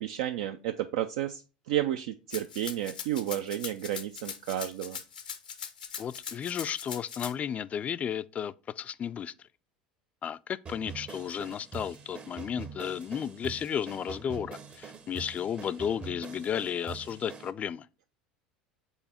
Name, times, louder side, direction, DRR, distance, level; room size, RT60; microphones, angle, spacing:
voice 1, 0.0-1.4 1.7-5.0, right 12 dB, 65° right, 0.4 m, -32 dB
Rattle (instrument), 2.3-7.3, left 7 dB, 85° left, 0.7 m, -40 dB
voice 2, 6.0-9.3 10.2-18.1, left 8 dB, 30° left, 0.3 m, -33 dB
sound 1, 10.7-17.5, right 6 dB, 30° right, 0.7 m, -44 dB
5.6 x 4.0 x 4.2 m
hypercardioid pair, 75°, 4 cm